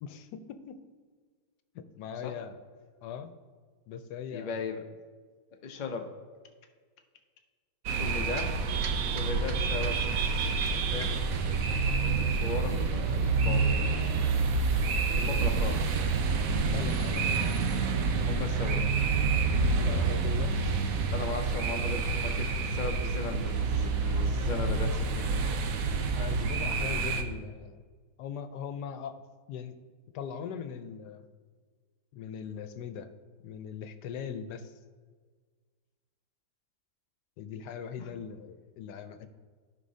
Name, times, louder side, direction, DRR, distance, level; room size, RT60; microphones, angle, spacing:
voice 1, 0.0-0.8 1.7-2.6 3.0-3.3 3.9-4.6 15.1-15.7 16.7-18.3 19.8-20.5 26.2-27.8 28.2-29.2 29.5-29.8 30.1-31.3 32.1-33.1 33.4-34.7 37.4-39.3, left 7 dB, 85° left, 10 dB, 1.2 m, -40 dB
voice 2, 4.3-4.8 5.6-6.1 8.0-8.5 9.1-10.0 10.6-14.1 15.1-15.9 18.3-18.9 21.1-25.6 38.0-38.1, left 4 dB, 50° left, 4 dB, 0.5 m, -38 dB
sound 1, 7.9-27.2, right 4 dB, 65° right, 1.0 m, -28 dB
14.5 x 5.1 x 2.7 m, 1.6 s
omnidirectional pair, 1.8 m